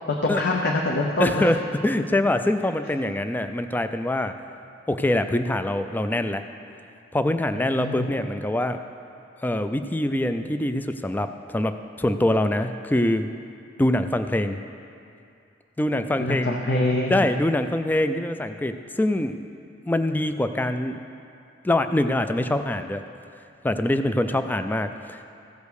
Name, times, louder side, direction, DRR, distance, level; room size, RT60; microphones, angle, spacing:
voice 1, 0.1-1.5 7.5-8.1 16.2-17.3, left 2 dB, 60° left, -1 dB, 0.8 m, -25 dB
voice 2, 1.2-4.3 4.9-6.4 7.1-8.8 9.4-13.3 13.8-14.6 15.8-16.6 17.1-19.4 19.8-21.0 21.6-23.0 23.6-25.2, left 1 dB, 10° left, 9 dB, 0.3 m, -24 dB
15.0 x 5.2 x 6.4 m, 2.5 s
head